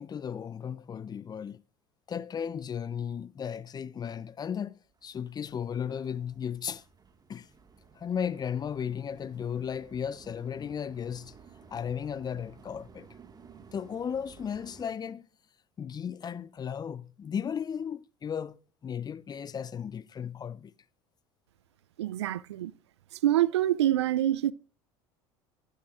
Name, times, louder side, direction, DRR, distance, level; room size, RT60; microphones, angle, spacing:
voice 1, 0.0-1.6 2.1-6.8 7.3-7.5 8.0-11.3 11.7-13.1 13.7-15.3 15.8-18.6 18.8-20.7, left 7 dB, 30° left, 0.5 m, -35 dB
sound 1, 4.9-14.9, right 5 dB, 30° right, 1.7 m, -55 dB
voice 2, 22.0-22.7 23.2-24.5, right 13 dB, 90° right, 0.4 m, -25 dB
13.5 x 12.0 x 2.4 m
hypercardioid pair, 80°, 14 cm